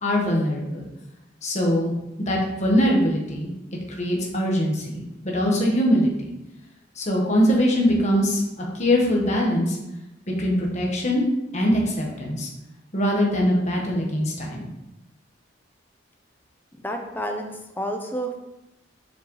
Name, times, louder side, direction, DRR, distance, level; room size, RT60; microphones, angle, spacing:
voice 1, 0.0-0.9 1.4-1.9 2.2-3.5 3.9-6.1 7.0-8.4 8.7-9.8 10.4-11.2 11.5-12.5 12.9-14.7, equal, 35° left, -2 dB, 1.4 m, -22 dB
voice 2, 16.7-18.4, equal, 10° left, 3 dB, 0.7 m, -30 dB
7.2 x 4.9 x 3.2 m, 0.92 s
head